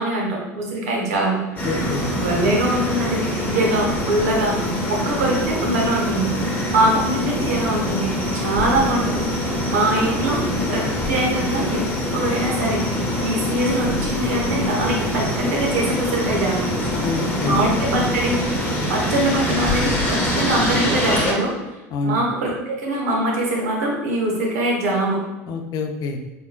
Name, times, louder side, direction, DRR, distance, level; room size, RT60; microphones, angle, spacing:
voice 1, 0.0-1.4 2.2-4.6 4.9-6.3 6.7-10.4 10.7-11.8 12.1-12.8 13.2-16.6 17.4-18.4 18.9-21.5 22.0-25.2, right 1 dB, 80° right, -2 dB, 1.0 m, -22 dB
voice 2, 1.6-2.1 17.0-17.7 21.9-22.2 25.5-26.2, left 3 dB, 50° left, 5 dB, 0.5 m, -26 dB
sound 1, 1.6-21.3, left 1 dB, 20° left, 1.0 m, -24 dB
3.8 x 3.4 x 2.2 m, 1.1 s
hypercardioid pair, 85°, 8 cm